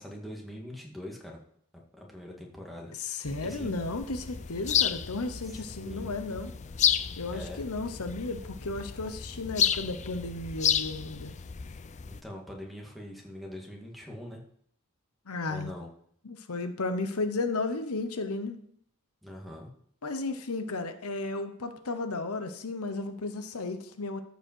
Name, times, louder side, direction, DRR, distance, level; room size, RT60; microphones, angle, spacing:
voice 1, 0.0-1.4 1.9-2.9 3.4-3.8 5.4-6.2 7.3-7.6 12.1-14.4 15.5-15.9 19.2-19.7, left 1 dB, ahead, -2 dB, 2.0 m, -42 dB
voice 2, 3.0-6.5 7.2-11.3 15.3-15.7 16.2-18.6 20.0-24.2, left 3 dB, 90° left, 9 dB, 0.9 m, -34 dB
sound 1, 3.2-12.2, left 9 dB, 35° left, 0.4 m, -32 dB
13.5 x 5.3 x 4.6 m, 0.65 s
head